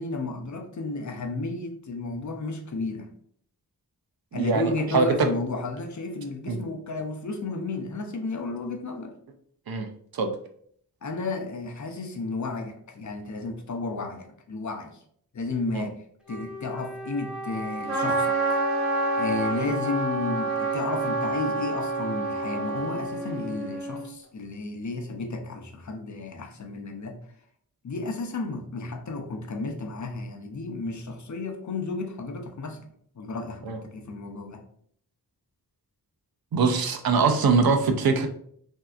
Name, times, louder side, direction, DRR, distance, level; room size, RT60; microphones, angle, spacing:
voice 1, 0.0-3.1 4.3-9.1 11.0-14.9 15.3-16.0 16.3-18.8 19.2-27.2 27.8-32.9 33.2-34.6, left 3 dB, 50° left, 3 dB, 0.6 m, -33 dB
voice 2, 4.3-5.1 6.5-6.6 9.7-9.9 10.1-10.3 15.7-15.9 33.6-33.8 36.5-38.3, right 4 dB, 70° right, 5 dB, 0.5 m, -23 dB
Wind instrument woodwind instrument, 16.2-23.8, right 2 dB, ahead, 0.6 m, -37 dB
Trumpet, 17.9-24.1, right 2 dB, 35° right, 1.1 m, -28 dB
3.3 x 2.7 x 2.3 m, 0.64 s
wide cardioid pair, 100°, 38 cm